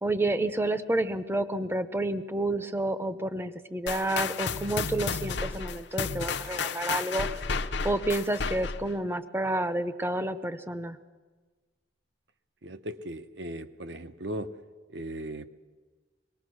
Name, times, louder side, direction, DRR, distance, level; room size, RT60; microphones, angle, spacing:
voice 1, 0.0-7.3 7.8-11.0, right 1 dB, 10° right, 11 dB, 0.7 m, -29 dB
sound 1, 3.9-8.9, left 5 dB, 60° left, 0.7 m, -32 dB
voice 2, 12.6-14.6 14.9-15.5, right 1 dB, 60° right, 9 dB, 0.9 m, -37 dB
23.0 x 19.0 x 6.3 m, 1.4 s
head